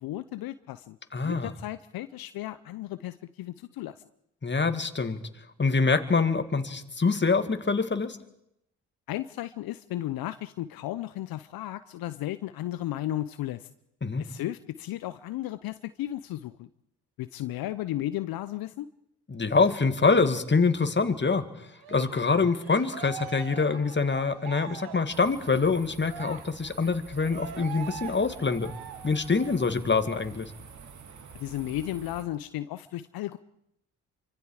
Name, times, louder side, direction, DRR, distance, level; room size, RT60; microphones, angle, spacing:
voice 1, 0.0-1.0 1.2-3.9 9.1-13.7 14.2-16.7 17.2-18.9 31.4-33.4, left 14 dB, 70° left, 13 dB, 0.8 m, -34 dB
voice 2, 1.1-1.5 4.4-5.2 5.6-8.2 14.0-14.2 19.3-21.5 21.9-28.7 29.0-30.5, left 4 dB, 30° left, 8 dB, 2.3 m, -25 dB
Cheering, 21.8-29.8 30.1-30.3 30.7-31.7, right 9 dB, 75° right, 1.9 m, -43 dB
sound 1, 25.1-32.2, right 5 dB, 50° right, 2.7 m, -48 dB
27.5 x 25.0 x 4.9 m, 0.80 s
hypercardioid pair, 45°, 38 cm